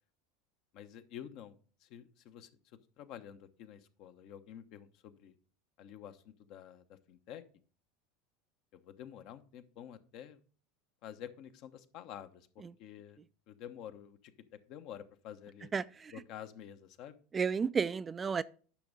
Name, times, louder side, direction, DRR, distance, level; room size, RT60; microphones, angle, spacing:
voice 1, 0.7-1.6 1.8-5.3 5.8-7.4 8.7-10.4 11.0-13.2 13.5-14.3 14.7-15.7 16.1-17.2, left 10 dB, 55° left, 1.0 m, -49 dB
voice 2, 15.7-16.1 17.3-18.4, right 6 dB, 25° right, 0.4 m, -32 dB
10.0 x 6.1 x 3.9 m
hypercardioid pair, 85°, 0 cm